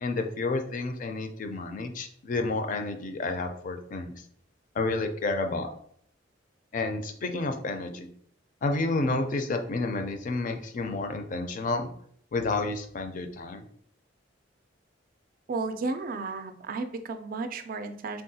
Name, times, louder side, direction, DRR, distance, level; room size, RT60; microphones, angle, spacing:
voice 1, 0.0-4.1 4.8-5.7 6.7-8.1 8.6-11.9 12.3-13.6, left 3 dB, 45° left, 6 dB, 0.4 m, -30 dB
voice 2, 15.5-18.2, right 3 dB, 50° right, 8 dB, 0.3 m, -33 dB
3.6 x 2.2 x 2.7 m, 0.64 s
head